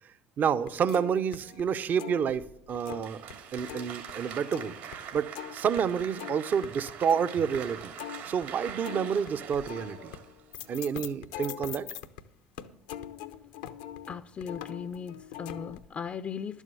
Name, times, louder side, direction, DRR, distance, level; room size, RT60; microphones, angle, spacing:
voice 1, 0.4-3.2 3.5-4.8 5.1-7.9 8.2-10.1 10.7-11.9, right 7 dB, 45° right, 0.6 m, -29 dB
sound 1, 0.6-3.3 3.6-12.2 12.6-15.9, left 10 dB, 80° left, 0.7 m, -43 dB
Applause, 2.7-10.8, right 8 dB, 75° right, 2.4 m, -43 dB
voice 2, 14.1-16.6, left 6 dB, 40° left, 0.5 m, -38 dB
11.5 x 7.2 x 6.8 m
hypercardioid pair, 60°, 4 cm